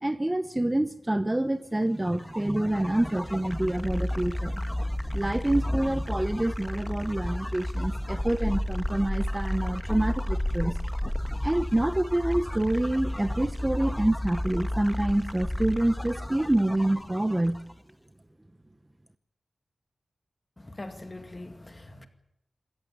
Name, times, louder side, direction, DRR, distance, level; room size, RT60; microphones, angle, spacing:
voice 1, 0.0-10.8 11.4-17.6, right 1 dB, 15° right, 0.9 m, -27 dB
sound 1, 2.0-17.7, left 1 dB, 10° left, 1.2 m, -32 dB
voice 2, 20.6-22.1, left 2 dB, 25° left, 2.1 m, -42 dB
27.0 x 14.5 x 8.8 m
wide cardioid pair, 110°, 0 cm